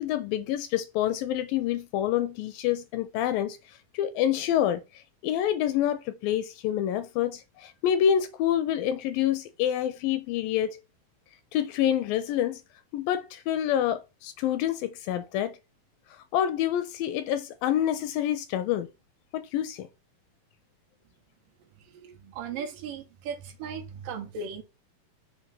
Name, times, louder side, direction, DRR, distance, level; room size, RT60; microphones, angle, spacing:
voice 1, 0.0-10.8 11.5-12.6 12.9-15.5 16.3-18.9 19.3-19.9, left 10 dB, 80° left, 2.1 m, -27 dB
voice 2, 21.8-24.6, right 6 dB, 75° right, 2.3 m, -37 dB
6.4 x 2.7 x 5.3 m
omnidirectional pair, 4.3 m